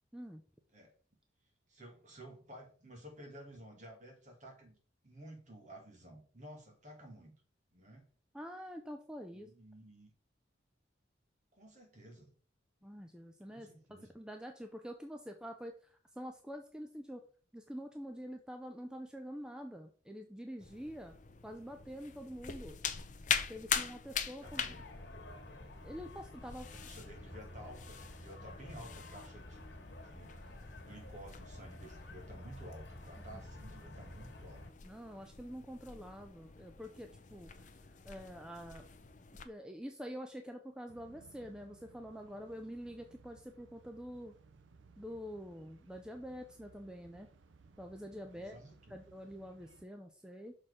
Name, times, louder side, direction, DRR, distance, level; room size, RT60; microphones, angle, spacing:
voice 1, 1.7-4.8 5.0-7.3 7.7-8.1 9.3-10.1 11.5-12.3 13.5-14.1 24.4-24.8 26.5-29.6 30.0-34.6 48.3-49.0, right 1 dB, 40° right, 1 dB, 2.1 m, -53 dB
voice 2, 8.3-9.5 12.8-13.7 14.1-17.2 17.5-21.1 21.4-22.8 23.5-24.6 25.8-26.7 34.8-37.7 38.0-38.9 39.4-44.3 45.0-47.3 47.8-48.5 48.9-50.5, equal, 5° right, 5 dB, 0.4 m, -46 dB
sound 1, 20.6-39.5, left 7 dB, 40° left, 0.6 m, -43 dB
sound 2, 24.4-34.7, left 1 dB, 65° left, 1.6 m, -50 dB
sound 3, 40.9-49.9, right 4 dB, 90° right, 0.6 m, -62 dB
6.1 x 4.3 x 4.9 m, 0.42 s
head